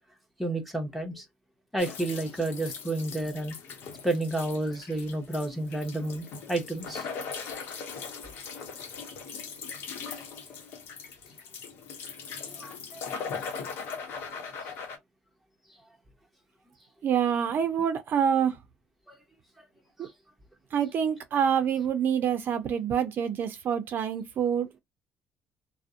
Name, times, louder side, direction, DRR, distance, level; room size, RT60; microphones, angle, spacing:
voice 1, 0.4-1.2 1.7-3.6 4.0-7.1 12.3-13.2 19.1-19.2 20.0-20.1, right 2 dB, ahead, 0.9 m, -31 dB
sound 1, 1.8-15.0, left 5 dB, 70° left, 0.8 m, -40 dB
voice 2, 17.0-18.6 20.0-20.1 20.7-24.8, right 8 dB, 55° right, 0.5 m, -26 dB
2.5 x 2.1 x 2.4 m
supercardioid pair, 80°, 4 cm